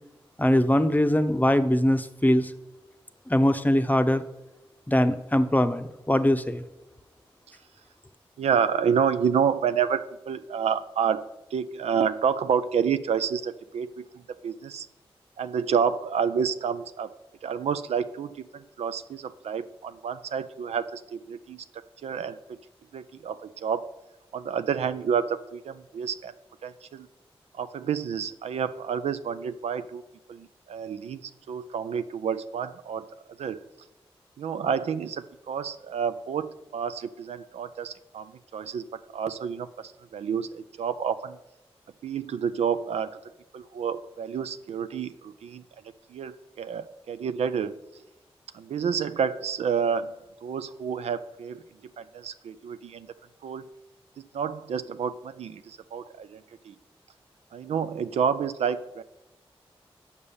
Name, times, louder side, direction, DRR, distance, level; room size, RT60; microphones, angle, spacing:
voice 1, 0.4-2.5 3.3-4.2 4.9-6.6, left 1 dB, 15° left, 10 dB, 0.7 m, -22 dB
voice 2, 8.4-11.2 11.5-14.9 15.4-17.1 17.4-22.6 22.9-23.9 24.3-26.3 26.6-27.1 27.5-30.0 30.3-33.1 33.4-33.6 34.4-38.9 39.1-41.4 42.0-43.2 43.5-45.6 46.1-47.7 48.5-50.1 50.4-51.6 52.0-53.1 53.4-53.6 54.2-56.8 57.5-59.0, right 7 dB, 80° right, 11 dB, 0.4 m, -29 dB
6.7 x 5.5 x 6.9 m, 0.94 s
cardioid pair, 40°, 11 cm